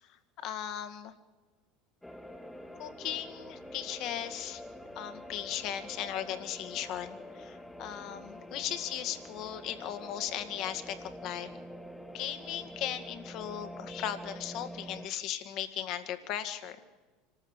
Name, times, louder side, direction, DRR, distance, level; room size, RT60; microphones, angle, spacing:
voice 1, 0.4-1.1 2.8-4.6 5.0-11.5 12.1-16.8, left 10 dB, 55° left, 9 dB, 1.9 m, -37 dB
sound 1, 2.0-15.1, equal, 5° left, 1.4 m, -46 dB
25.5 x 13.5 x 8.1 m, 1.3 s
hypercardioid pair, 90°, 0 cm